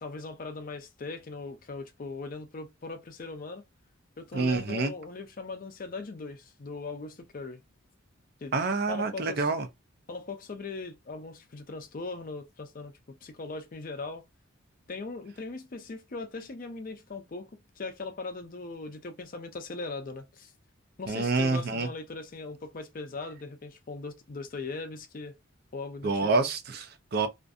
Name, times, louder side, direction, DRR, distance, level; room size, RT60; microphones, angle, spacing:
voice 1, 0.0-3.6 4.2-7.6 8.4-8.5 8.9-9.5 10.1-12.9 13.2-14.3 14.9-20.5 21.0-25.4 25.7-26.5, left 3 dB, 40° left, 0.4 m, -39 dB
voice 2, 4.3-4.9 8.5-9.7 21.1-21.9 26.0-27.3, right 3 dB, 50° right, 0.4 m, -27 dB
2.5 x 2.5 x 2.3 m
head